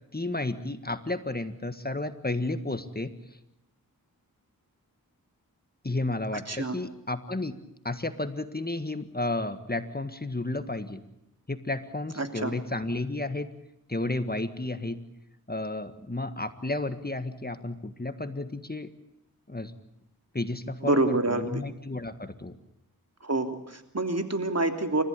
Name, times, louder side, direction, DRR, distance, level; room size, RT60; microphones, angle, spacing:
voice 1, 0.1-3.1 5.8-7.5 7.8-11.0 11.5-13.5 13.9-15.0 15.5-18.9 19.5-19.7 20.3-22.6, left 2 dB, 25° left, 10 dB, 1.7 m, -32 dB
voice 2, 12.2-12.5 20.8-21.6 23.2-25.0, right 2 dB, 45° right, 7 dB, 3.1 m, -27 dB
29.5 x 15.0 x 8.3 m, 0.85 s
wide cardioid pair, 45°, 36 cm